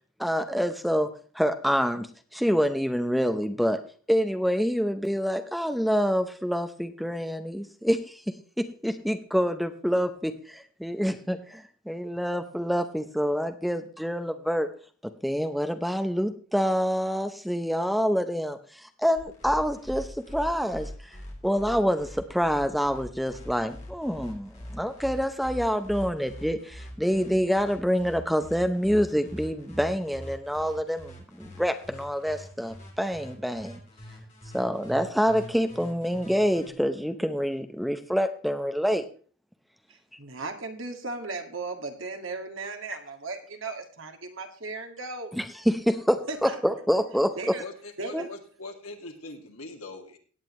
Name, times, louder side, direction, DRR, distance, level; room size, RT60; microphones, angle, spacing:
voice 1, 0.2-2.1 2.3-3.8 4.1-8.2 8.6-14.7 15.2-20.9 21.4-33.8 34.5-39.0 45.3-47.6 48.1-48.2, equal, ahead, 8 dB, 0.6 m, -27 dB
sound 1, 19.2-36.7, equal, 35° left, 3.1 m, -43 dB
voice 2, 39.9-45.3 46.2-46.6 47.4-47.6 48.0-48.3, right 3 dB, 65° right, 5 dB, 1.9 m, -36 dB
voice 3, 47.6-50.2, left 2 dB, 85° left, 3 dB, 2.1 m, -41 dB
17.0 x 9.0 x 3.1 m, 0.41 s
head